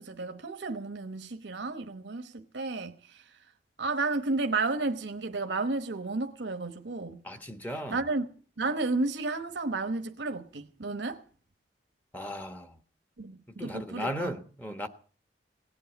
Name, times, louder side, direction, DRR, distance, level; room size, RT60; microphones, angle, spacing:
voice 1, 0.0-3.3 3.8-7.2 7.9-8.3 8.6-11.2 13.2-14.3, right 3 dB, 90° right, 1.1 m, -32 dB
voice 2, 7.2-8.0 12.1-12.8 13.5-14.9, equal, 10° left, 1.2 m, -36 dB
18.0 x 8.3 x 8.1 m
head